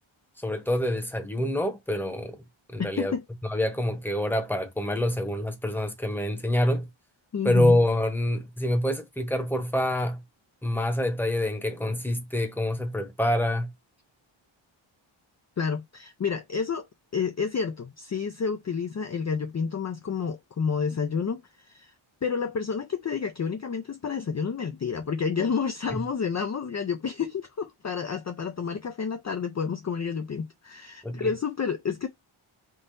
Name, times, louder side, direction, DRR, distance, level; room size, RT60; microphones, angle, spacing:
voice 1, 0.4-2.4 2.7-3.1 3.4-6.9 7.4-10.2 10.6-13.7 25.9-26.0 31.0-31.3, left 1 dB, 5° left, 1.0 m, -26 dB
voice 2, 2.8-3.2 7.3-7.8 15.6-16.9 17.1-21.9 22.2-32.1, left 6 dB, 35° left, 0.5 m, -30 dB
3.9 x 3.7 x 2.5 m
wide cardioid pair, 115°, 49 cm